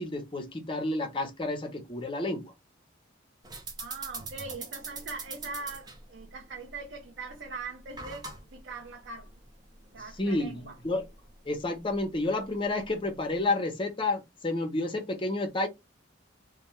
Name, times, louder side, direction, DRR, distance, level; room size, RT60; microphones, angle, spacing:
voice 1, 0.0-2.5 10.2-11.0 11.5-15.7, left 2 dB, 25° left, 0.7 m, -30 dB
Gas putting pan, 3.4-13.5, right 3 dB, 20° right, 0.6 m, -45 dB
voice 2, 3.8-9.3 9.9-10.8, right 3 dB, 60° right, 0.6 m, -41 dB
2.2 x 2.2 x 3.0 m
head